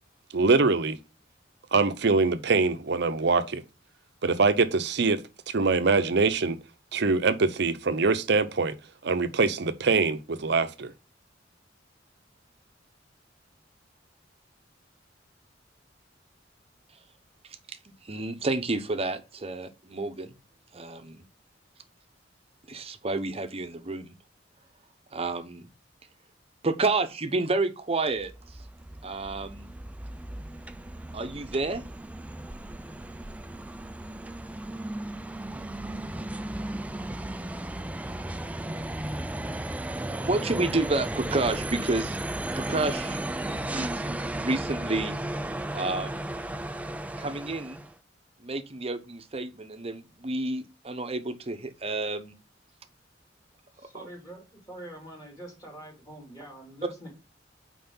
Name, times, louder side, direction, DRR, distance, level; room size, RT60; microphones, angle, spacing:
voice 1, 0.3-1.0 1.7-3.6 4.2-5.2 5.5-6.6 6.9-8.7 9.0-10.9, right 4 dB, 60° right, 0.7 m, -23 dB
voice 2, 18.0-20.3 20.7-21.2 22.7-24.1 25.1-25.7 26.6-28.3 29.0-29.7 31.1-31.8 40.0-42.2 42.6-43.2 43.5-45.2 45.7-46.2 47.2-47.8 48.4-52.3 53.9-54.0, right 2 dB, 30° right, 0.8 m, -30 dB
sound 1, 28.1-47.9, right 1 dB, 10° right, 0.3 m, -35 dB
voice 3, 53.7-57.1, right 1 dB, 20° left, 3.1 m, -45 dB
5.7 x 4.6 x 5.5 m
head